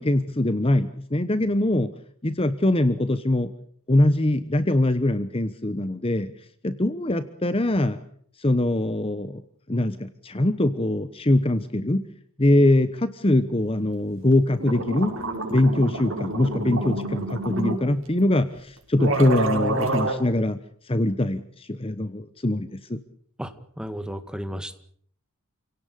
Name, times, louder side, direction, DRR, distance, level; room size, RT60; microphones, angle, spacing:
voice 1, 0.0-1.9 2.2-3.5 3.9-6.3 6.6-8.0 8.4-9.4 9.7-12.0 12.4-15.1 15.5-20.6 20.9-23.0, left 1 dB, 25° left, 12 dB, 1.0 m, -22 dB
sound 1, 14.3-14.4 14.6-17.8 18.6-18.7 19.0-20.1, right 2 dB, 60° right, 5.4 m, -27 dB
voice 2, 23.4-24.8, equal, 5° right, 9 dB, 1.9 m, -34 dB
28.5 x 17.5 x 8.4 m, 0.63 s
head